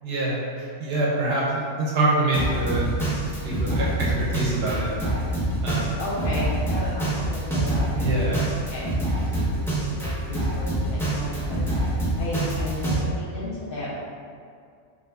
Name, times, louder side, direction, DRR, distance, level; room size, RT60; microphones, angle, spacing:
voice 1, 0.0-2.8 3.4-3.9 4.3-4.9 5.6-5.9 8.0-8.4, right 2 dB, 65° right, -5 dB, 0.7 m, -25 dB
Drum kit, 2.3-13.0, right 1 dB, 5° left, 0.4 m, -26 dB
voice 2, 3.6-4.0 5.6-8.8 9.3-11.6 12.2-13.9, left 2 dB, 55° left, -7 dB, 0.7 m, -34 dB
2.5 x 2.4 x 3.3 m, 2.3 s
omnidirectional pair, 1.3 m